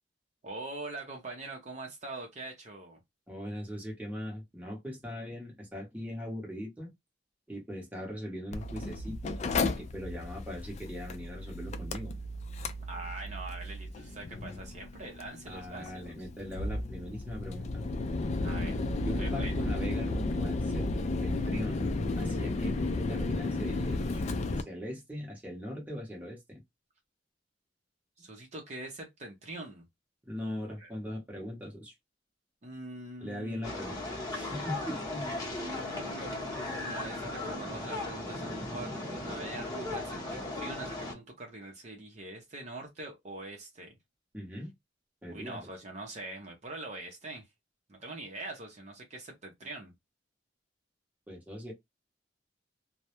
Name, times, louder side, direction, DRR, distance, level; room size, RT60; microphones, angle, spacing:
voice 1, 0.4-3.0 12.9-16.0 18.4-18.8 19.2-19.6 28.2-29.8 30.7-30.9 32.6-33.6 35.5-43.9 45.3-47.5 47.9-49.9, right 2 dB, 40° right, 0.6 m, -43 dB
voice 2, 3.3-6.9 7.5-12.1 15.5-17.7 19.0-20.8 21.2-24.2 24.6-26.4 30.2-31.9 33.2-34.0 34.3-35.3 44.3-44.7 45.2-45.7 51.3-51.7, equal, 10° right, 0.8 m, -40 dB
Mechanical fan, 8.5-24.6, left 2 dB, 40° left, 0.3 m, -33 dB
sound 1, 33.6-41.1, left 2 dB, 20° left, 0.8 m, -37 dB
2.2 x 2.0 x 2.8 m
head